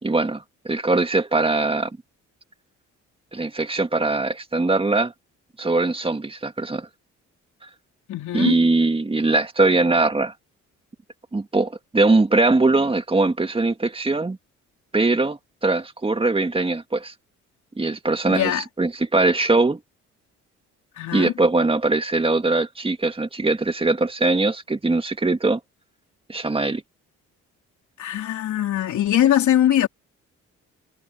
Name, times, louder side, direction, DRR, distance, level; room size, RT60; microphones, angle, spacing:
voice 1, 0.0-1.9 3.3-5.1 5.6-6.9 8.3-10.3 11.3-14.4 14.9-17.1 17.8-19.8 21.1-25.6 26.3-26.8, right 3 dB, 20° right, 2.0 m, -21 dB
voice 2, 8.1-8.5 18.3-18.6 21.0-21.3 28.0-29.9, left 11 dB, 70° left, 3.9 m, -21 dB
cardioid pair, 90°, 30 cm